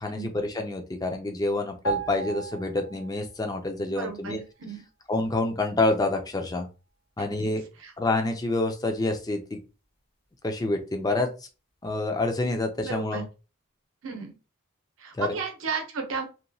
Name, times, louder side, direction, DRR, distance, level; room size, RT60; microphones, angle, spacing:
voice 1, 0.0-4.4 5.1-6.7 7.2-7.6 8.0-9.6 10.4-11.3 11.8-13.3 15.2-15.4, left 2 dB, 15° left, 5 dB, 0.4 m, -27 dB
sound 1, 1.8-3.5 3.7-4.0, right 3 dB, 75° left, 1.2 m, -34 dB
voice 2, 4.0-4.8 7.4-7.5 7.8-7.9 12.8-13.2 14.0-14.3 15.0-16.2, right 5 dB, 70° right, 4 dB, 0.7 m, -33 dB
2.9 x 2.2 x 2.6 m, 0.32 s
head